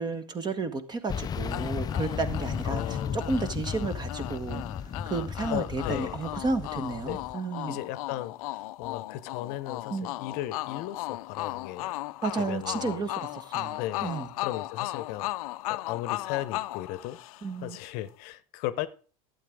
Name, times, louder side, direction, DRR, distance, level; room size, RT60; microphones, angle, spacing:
voice 1, 0.0-4.6 5.1-7.8 9.9-10.1 12.2-14.3 17.4-17.8, right 3 dB, 25° right, 1.3 m, -32 dB
sound 1, 1.1-7.3, left 7 dB, 20° left, 0.4 m, -35 dB
sound 2, 1.5-17.7, left 18 dB, 75° left, 0.5 m, -37 dB
voice 2, 2.6-3.3 5.5-6.2 7.0-7.2 7.7-11.9 12.4-13.1 13.8-14.1 14.4-17.2 17.6-18.9, left 14 dB, 55° left, 0.9 m, -36 dB
11.5 x 8.5 x 3.6 m
supercardioid pair, 115°, 19 cm